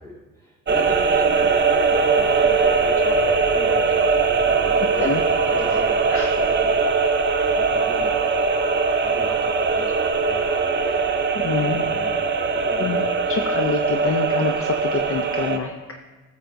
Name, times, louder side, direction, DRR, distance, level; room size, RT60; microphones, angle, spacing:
voice 1, 0.0-6.9 7.4-8.4 8.7-11.3 11.7-13.5, left 1 dB, 10° left, -4 dB, 2.8 m, -37 dB
sound 1, 0.7-15.6, right 4 dB, 35° right, 0.7 m, -21 dB
voice 2, 11.4-11.8 12.8-13.0 13.3-15.7, left 5 dB, 45° left, 5 dB, 0.6 m, -26 dB
13.0 x 6.8 x 2.6 m, 1.3 s
cardioid pair, 90°, 30 cm